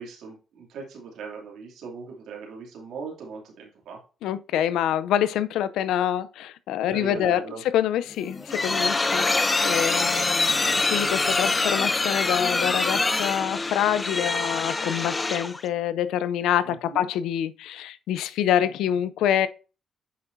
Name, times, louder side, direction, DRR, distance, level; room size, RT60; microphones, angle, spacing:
voice 1, 0.0-4.0 6.9-7.6 16.6-17.1, right 4 dB, 80° right, 2.6 m, -39 dB
voice 2, 4.2-19.5, left 10 dB, 85° left, 0.5 m, -26 dB
sound 1, 8.1-15.6, left 3 dB, 25° left, 0.7 m, -25 dB
8.4 x 6.1 x 2.7 m
cardioid pair, 90°, 0 cm